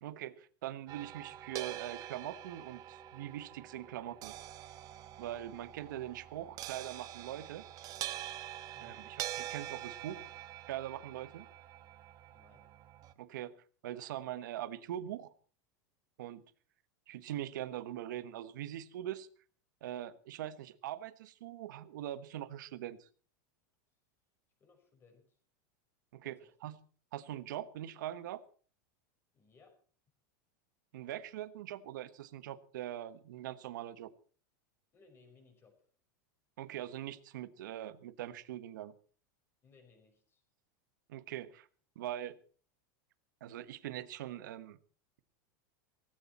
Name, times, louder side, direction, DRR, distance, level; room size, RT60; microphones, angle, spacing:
voice 1, 0.0-4.3 5.2-7.6 8.8-10.3 10.7-11.4 13.2-13.5 13.8-15.3 16.2-16.4 17.1-19.3 19.8-23.1 26.1-26.8 27.1-28.4 30.9-34.1 36.6-38.9 41.1-41.7 41.9-42.4 43.4-44.8, right 12 dB, 80° right, 15 dB, 1.2 m, -42 dB
sound 1, 0.9-13.1, right 13 dB, 35° right, 1.0 m, -45 dB
voice 2, 8.7-9.2 12.3-12.7 24.6-25.4 26.4-26.5 29.3-29.7 34.9-35.9 39.6-40.4, left 4 dB, 25° left, 4 dB, 5.9 m, -63 dB
17.5 x 16.0 x 4.3 m, 0.43 s
supercardioid pair, 140°, 10 cm